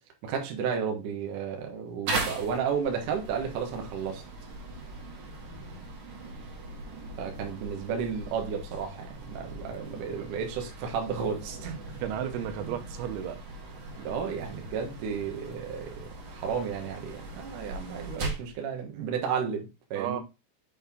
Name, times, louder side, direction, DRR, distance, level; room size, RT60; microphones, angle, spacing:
voice 1, 0.2-4.2 7.2-11.9 13.9-20.2, right 7 dB, 70° right, 2.0 m, -33 dB
sound 1, 2.1-18.5, right 2 dB, 45° right, 2.7 m, -39 dB
voice 2, 12.0-13.4 20.0-20.2, right 10 dB, 85° right, 3.6 m, -33 dB
7.8 x 4.1 x 3.6 m
omnidirectional pair, 5.9 m